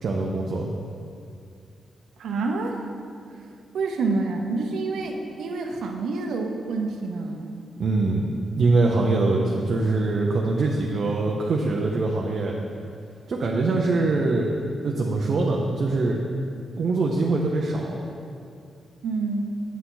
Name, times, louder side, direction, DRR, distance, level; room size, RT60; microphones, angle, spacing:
voice 1, 0.0-0.7 7.8-12.6 13.3-14.6 14.8-16.2 16.8-18.0, right 3 dB, 50° right, -1 dB, 0.7 m, -23 dB
voice 2, 2.2-2.9 3.7-7.5 19.0-19.5, right 3 dB, 85° right, 3 dB, 0.8 m, -27 dB
8.4 x 8.3 x 3.9 m, 2.4 s
wide cardioid pair, 160°, 0 cm